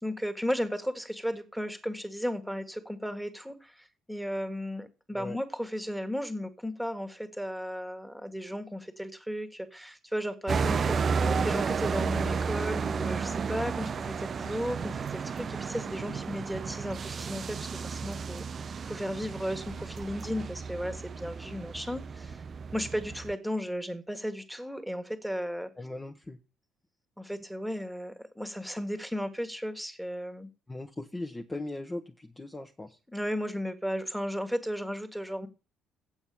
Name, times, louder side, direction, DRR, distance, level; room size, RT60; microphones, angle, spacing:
voice 1, 0.0-18.4 18.9-22.4 22.7-25.7 27.2-30.5 33.1-35.5, equal, ahead, 1.7 m, -35 dB
sound 1, 10.5-23.3, right 5 dB, 40° right, 0.5 m, -32 dB
voice 2, 25.8-26.4 30.7-33.0, left 2 dB, 20° left, 1.1 m, -38 dB
8.2 x 7.1 x 7.0 m
figure-of-eight pair, 45°, 0 cm